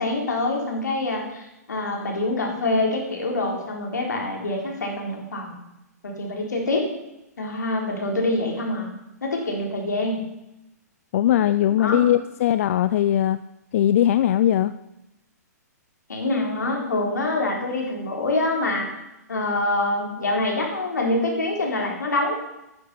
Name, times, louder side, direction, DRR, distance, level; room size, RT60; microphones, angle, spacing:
voice 1, 0.0-5.6 6.0-6.9 7.4-8.9 9.2-10.2 11.8-12.0 16.1-18.9 19.3-22.3, left 2 dB, 80° left, 0 dB, 4.0 m, -25 dB
voice 2, 11.1-13.4 13.7-14.7, left 11 dB, 55° left, 13 dB, 0.4 m, -20 dB
10.0 x 9.7 x 5.8 m, 0.89 s
hypercardioid pair, 125°, 9 cm